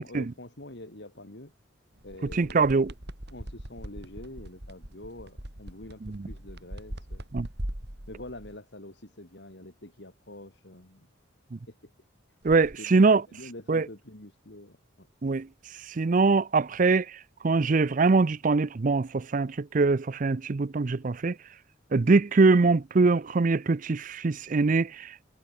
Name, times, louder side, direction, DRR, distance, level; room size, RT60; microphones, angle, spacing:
voice 1, 0.0-1.5 2.0-2.8 3.3-7.2 8.1-11.1 11.7-11.9 12.8-15.1, left 1 dB, 60° left, 3.0 m, -46 dB
sound 1, 2.0-8.6 12.4-12.7, right 1 dB, 55° right, 4.0 m, -41 dB
voice 2, 2.3-2.9 7.3-7.5 12.4-13.2 13.7-13.8 15.2-15.5 15.9-17.1 17.4-21.4 21.9-25.1, right 3 dB, 40° right, 0.5 m, -23 dB
head